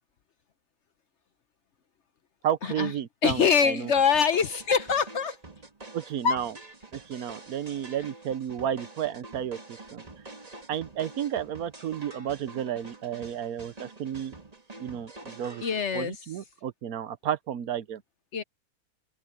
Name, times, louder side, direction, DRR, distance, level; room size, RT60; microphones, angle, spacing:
voice 1, 2.4-3.9 5.9-6.5 6.9-10.0 10.7-14.3 14.8-15.6 15.9-18.0, right 10 dB, 70° right, 1.2 m, -32 dB
voice 2, 3.2-5.4 6.2-6.4 15.6-16.2 18.3-18.4, left 6 dB, 55° left, 0.9 m, -24 dB
sound 1, 4.0-15.8, right 2 dB, 25° right, 1.8 m, -47 dB
open air
omnidirectional pair, 1.7 m